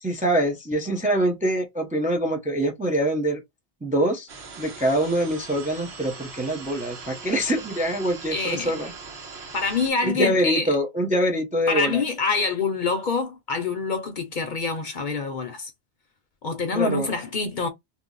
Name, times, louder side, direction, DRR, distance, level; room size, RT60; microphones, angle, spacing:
voice 1, 0.0-3.4 3.8-4.3 4.6-8.9 10.0-12.0 16.7-17.1, right 1 dB, 10° right, 0.5 m, -24 dB
sound 1, 4.3-9.9, right 4 dB, 75° right, 1.1 m, -40 dB
voice 2, 8.3-8.7 9.5-10.7 11.7-15.7 16.4-17.7, left 4 dB, 55° left, 0.7 m, -26 dB
2.8 x 2.0 x 3.7 m
omnidirectional pair, 1.1 m